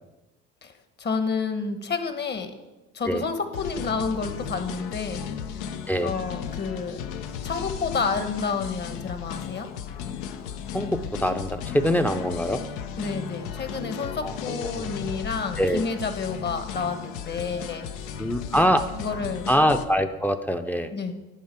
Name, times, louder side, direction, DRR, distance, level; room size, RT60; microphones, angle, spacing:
voice 1, 1.0-2.5 2.9-5.3 5.5-5.8 6.0-7.1 7.4-9.7 13.0-18.1 19.0-19.5 20.9-21.1, left 4 dB, 35° left, 8 dB, 1.1 m, -30 dB
sound 1, 3.5-19.9, left 8 dB, 80° left, 0.7 m, -35 dB
voice 2, 10.7-12.6 14.2-14.3 14.6-14.9 15.6-15.8 18.2-18.9 19.5-20.9, equal, 5° left, 9 dB, 0.5 m, -24 dB
10.5 x 4.7 x 4.4 m, 1.1 s
supercardioid pair, 80°, 29 cm